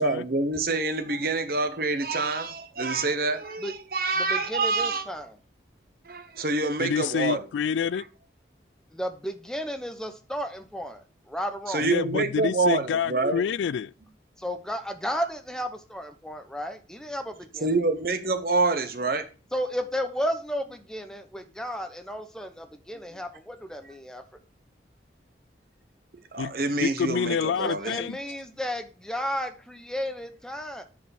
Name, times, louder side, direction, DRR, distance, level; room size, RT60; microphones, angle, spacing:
voice 1, 0.0-5.0 6.0-7.4 11.7-13.5 17.6-19.3 26.3-28.0, right 3 dB, 55° right, 1.0 m, -26 dB
voice 2, 4.2-5.3 8.9-11.9 14.4-17.7 19.5-24.2 27.6-30.8, equal, 5° left, 0.8 m, -33 dB
voice 3, 6.8-8.1 11.8-13.9 26.4-26.5 26.8-28.2, left 7 dB, 85° left, 0.3 m, -27 dB
10.0 x 4.8 x 4.2 m
head